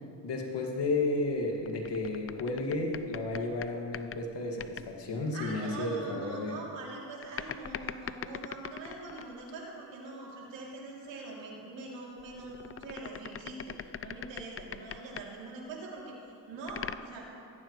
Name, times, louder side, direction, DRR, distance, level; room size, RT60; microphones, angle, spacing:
voice 1, 0.2-6.6, left 2 dB, 70° left, 0 dB, 2.3 m, -32 dB
sound 1, 1.3-4.3 4.6-4.9 7.2-9.4 12.2-15.3 16.7-17.0, left 8 dB, 30° left, 0.5 m, -42 dB
voice 2, 5.3-16.1 16.5-17.3, right 3 dB, 85° right, -4 dB, 3.1 m, -43 dB
17.0 x 14.5 x 3.2 m, 2.7 s
supercardioid pair, 60°, 44 cm